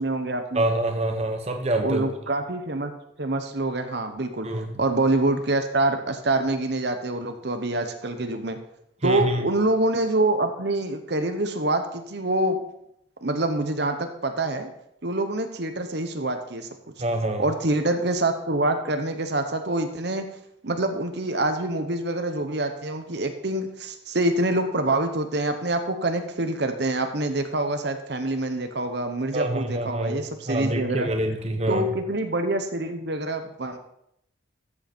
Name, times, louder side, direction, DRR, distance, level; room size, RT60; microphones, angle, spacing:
voice 1, 0.0-0.6 1.8-2.9 3.2-4.5 4.8-8.6 9.0-12.6 13.2-14.7 15.0-16.7 17.4-20.2 20.6-31.1 31.7-33.8, right 2 dB, 55° right, 7 dB, 1.0 m, -26 dB
voice 2, 0.5-2.1 4.4-4.8 9.0-9.4 17.0-17.5 29.3-31.9, right 1 dB, 30° right, 4 dB, 0.9 m, -26 dB
13.5 x 7.8 x 4.4 m, 0.78 s
head